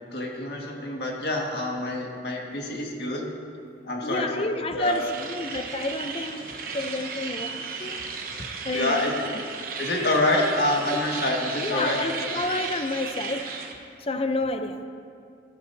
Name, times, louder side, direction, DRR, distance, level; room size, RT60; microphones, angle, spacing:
voice 1, 0.1-3.3 3.8-4.5 4.7-5.2 8.7-9.2 9.8-12.3, left 1 dB, 60° left, -1 dB, 1.9 m, -27 dB
voice 2, 4.0-6.5 6.7-8.0 8.4-9.0 10.9-11.0 11.5-13.5 14.0-14.9, left 2 dB, 30° left, 7 dB, 0.6 m, -29 dB
sound 1, 4.8-13.7, right 5 dB, 50° right, 1.0 m, -35 dB
14.5 x 13.5 x 2.8 m, 2.4 s
head